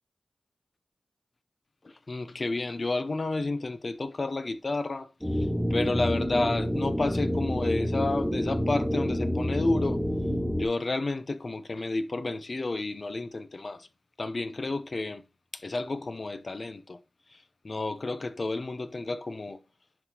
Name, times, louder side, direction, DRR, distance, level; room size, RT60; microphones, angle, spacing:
voice 1, 1.8-10.0 10.6-13.9 14.2-15.2 15.5-17.0 17.3-17.4 17.6-19.6, left 2 dB, 55° left, 0.8 m, -31 dB
sound 1, 5.2-10.7, equal, 5° left, 1.8 m, -28 dB
10.5 x 4.1 x 3.0 m
cardioid pair, 45°, 0 cm